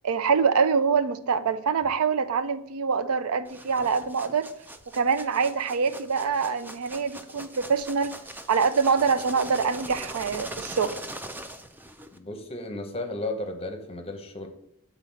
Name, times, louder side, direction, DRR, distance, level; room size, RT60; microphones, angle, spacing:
voice 1, 0.0-4.5 4.9-8.1 8.5-11.0, right 5 dB, 70° right, 12 dB, 0.5 m, -25 dB
sound 1, 3.4-12.2, right 1 dB, 10° right, 0.4 m, -41 dB
voice 2, 12.1-14.5, left 2 dB, 25° left, 4 dB, 0.8 m, -34 dB
7.7 x 4.0 x 4.1 m, 0.72 s
head